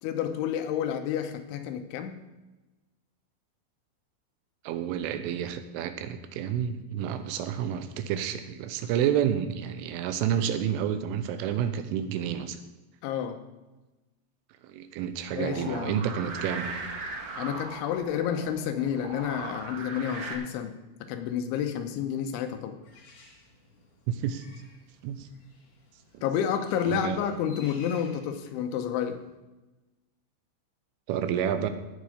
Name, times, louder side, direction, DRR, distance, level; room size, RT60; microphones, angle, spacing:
voice 1, 0.0-2.3 13.0-13.4 15.3-16.1 17.4-20.7 21.0-22.8 26.2-29.2, left 8 dB, 80° left, 7 dB, 3.2 m, -30 dB
voice 2, 4.6-12.6 14.6-16.7 24.1-24.4 25.0-25.3 26.1-26.2 26.8-27.2 31.1-31.7, right 9 dB, 85° right, 10 dB, 3.4 m, -29 dB
sound 1, 15.3-20.3, right 3 dB, 70° right, 1.5 m, -39 dB
Bird, 22.8-29.3, left 3 dB, 45° left, 3.8 m, -55 dB
17.0 x 7.4 x 5.0 m, 1.1 s
omnidirectional pair, 5.6 m